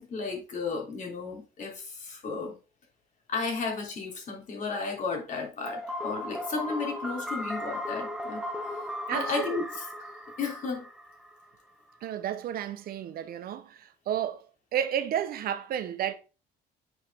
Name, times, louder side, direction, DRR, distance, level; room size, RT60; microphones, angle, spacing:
voice 1, 0.0-2.5 3.3-8.4 9.1-9.9 10.4-10.9, left 4 dB, 45° left, 3.2 m, -33 dB
sound 1, 5.7-11.5, left 1 dB, 5° right, 0.9 m, -36 dB
voice 2, 9.1-9.6 12.0-13.8 14.1-14.4 14.7-16.1, right 10 dB, 65° right, 0.8 m, -31 dB
8.0 x 5.0 x 3.5 m
cardioid pair, 110°, 17 cm